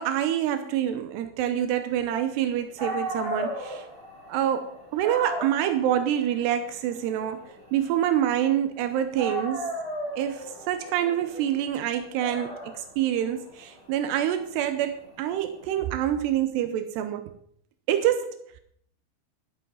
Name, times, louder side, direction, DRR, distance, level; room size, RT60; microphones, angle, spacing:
voice 1, 0.0-3.8 4.3-7.4 7.7-9.7 10.2-17.2 17.9-18.4, right 11 dB, 85° right, 2.3 m, -26 dB
Dog, 2.5-2.6 2.8-8.8 9.2-15.9, equal, 25° right, 5.7 m, -37 dB
12.5 x 11.5 x 5.6 m
omnidirectional pair, 5.9 m